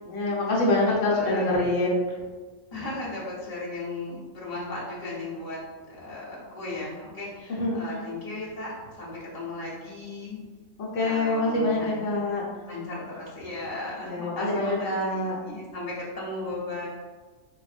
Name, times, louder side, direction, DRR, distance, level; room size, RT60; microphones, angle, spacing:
voice 1, 0.1-1.9 7.5-8.0 10.8-12.4 14.0-15.4, left 2 dB, 70° left, -5 dB, 1.2 m, -25 dB
voice 2, 0.9-1.5 2.7-5.6 5.8-10.4 11.0-12.1 12.7-16.9, left 2 dB, 30° left, -8 dB, 1.0 m, -36 dB
3.9 x 2.5 x 2.4 m, 1.4 s
omnidirectional pair, 1.3 m